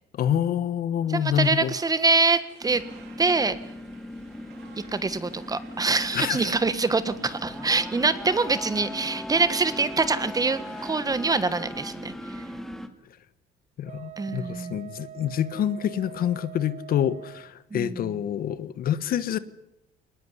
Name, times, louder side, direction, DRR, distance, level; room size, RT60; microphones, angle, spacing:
voice 1, 0.2-1.7 6.1-6.5 13.8-19.4, left 9 dB, 60° left, 14 dB, 1.3 m, -27 dB
voice 2, 1.1-2.8 3.2-3.6 4.9-12.4 14.2-14.8 17.7-18.2, right 3 dB, 20° right, 13 dB, 1.5 m, -25 dB
sound 1, 1.4-10.9, right 9 dB, 85° right, 3.3 m, -52 dB
sound 2, 2.6-12.9, equal, ahead, 2.1 m, -38 dB
Wind instrument woodwind instrument, 13.8-17.5, right 13 dB, 40° right, 1.0 m, -44 dB
22.5 x 19.5 x 9.8 m, 0.88 s
cardioid pair, 110°, 17 cm